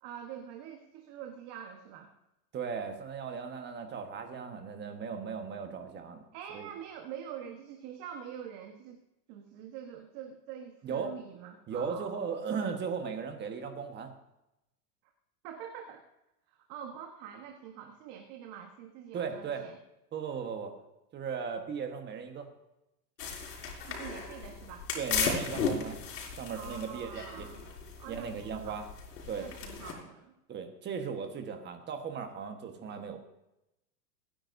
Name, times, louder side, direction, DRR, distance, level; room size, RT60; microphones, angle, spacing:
voice 1, 0.0-2.1 6.3-9.0 9.3-12.2 15.4-16.0 16.5-19.8 23.8-24.9 26.5-27.6 28.0-28.8 29.4-30.3, right 9 dB, 40° right, 3 dB, 1.3 m, -45 dB
voice 2, 2.5-6.2 6.5-6.7 10.8-11.1 11.7-14.1 19.1-19.6 20.1-20.7 21.1-22.5 24.9-26.0 26.4-27.5 28.1-28.8 29.3-29.5 30.5-33.2, right 6 dB, 20° right, 5 dB, 1.4 m, -37 dB
sound 1, 23.2-29.9, left 5 dB, 75° left, 4.5 m, -36 dB
23.0 x 10.0 x 2.7 m, 0.90 s
supercardioid pair, 140°, 48 cm